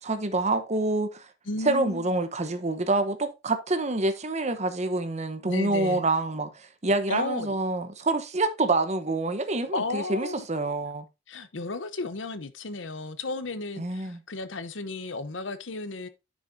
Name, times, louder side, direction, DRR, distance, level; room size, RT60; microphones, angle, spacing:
voice 1, 0.0-1.2 1.6-11.0 13.8-14.2, right 2 dB, 35° right, 1.0 m, -27 dB
voice 2, 1.5-2.1 5.4-6.1 7.1-7.6 9.7-10.5 11.3-16.1, left 3 dB, 85° left, 0.9 m, -33 dB
10.0 x 6.2 x 2.7 m
head